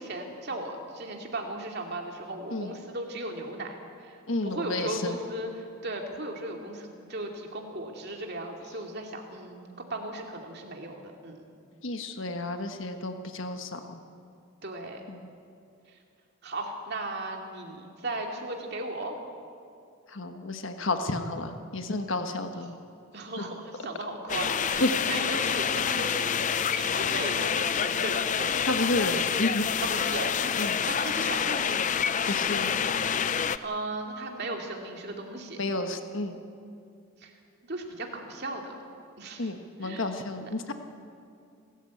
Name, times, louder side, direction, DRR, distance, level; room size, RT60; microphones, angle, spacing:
voice 1, 0.0-4.2 4.4-11.4 14.6-15.0 16.4-19.1 22.5-22.8 23.1-26.3 26.7-28.6 29.8-32.0 33.2-35.6 37.2-37.3 37.6-38.7 39.2-39.5 39.8-40.1 40.4-40.5, right 2 dB, 50° right, 2 dB, 2.6 m, -36 dB
voice 2, 4.3-5.2 11.8-14.0 15.1-15.2 20.1-22.8 23.4-23.5 24.8-24.9 28.7-29.6 30.6-30.8 32.3-32.7 35.6-36.4 39.4-40.7, left 2 dB, 60° left, 6 dB, 1.4 m, -31 dB
sound 1, 24.3-33.6, left 7 dB, 35° left, 0.5 m, -27 dB
28.5 x 14.0 x 8.5 m, 2.4 s
head